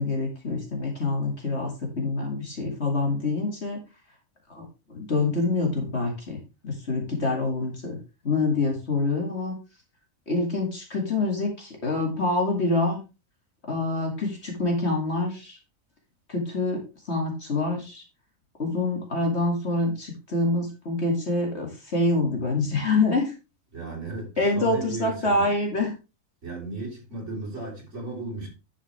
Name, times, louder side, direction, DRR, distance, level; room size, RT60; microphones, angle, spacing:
voice 1, 0.0-3.8 4.5-4.6 4.9-6.4 6.6-8.0 8.2-9.5 10.3-13.0 13.7-15.6 16.3-18.0 18.6-23.3 24.4-25.9, left 2 dB, 55° left, 2.4 m, -26 dB
voice 2, 23.7-25.5 26.4-28.5, right 2 dB, 60° right, 4.4 m, -35 dB
10.5 x 6.8 x 3.3 m
omnidirectional pair, 1.4 m